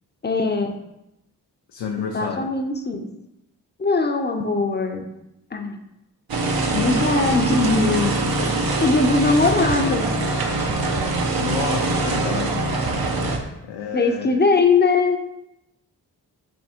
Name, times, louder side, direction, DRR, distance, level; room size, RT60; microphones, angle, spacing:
voice 1, 0.2-0.7 2.0-3.1 3.8-5.1 5.5-5.8 6.7-8.5 8.8-10.1 13.9-15.2, left 3 dB, 25° left, 4 dB, 0.7 m, -21 dB
voice 2, 1.7-2.5 10.9-12.7 13.6-14.3, left 6 dB, 85° left, 2 dB, 0.5 m, -30 dB
sound 1, 6.3-13.4, right 2 dB, 60° right, 0.9 m, -23 dB
3.6 x 2.9 x 4.4 m, 0.87 s
supercardioid pair, 45°, 41 cm